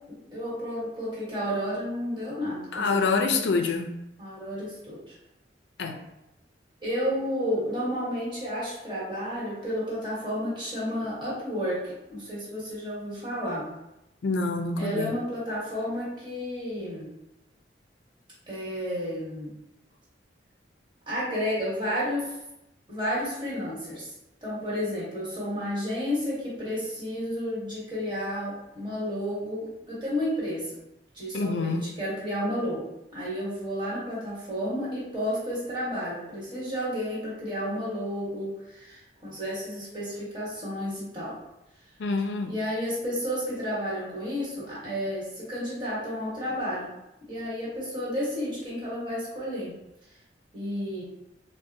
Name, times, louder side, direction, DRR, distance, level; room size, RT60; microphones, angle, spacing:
voice 1, 0.3-3.6 4.2-5.1 6.8-13.7 14.8-17.1 18.5-19.5 21.1-22.3 22.9-24.1 24.4-30.8 31.1-32.8 33.1-41.4 42.4-46.9 47.3-49.7 50.5-51.0, equal, 25° right, -8 dB, 1.2 m, -31 dB
voice 2, 2.7-3.9 5.8-6.0 14.2-15.1 31.3-31.9 42.0-42.5, left 4 dB, 70° left, 4 dB, 0.4 m, -26 dB
3.8 x 2.1 x 2.6 m, 0.88 s
head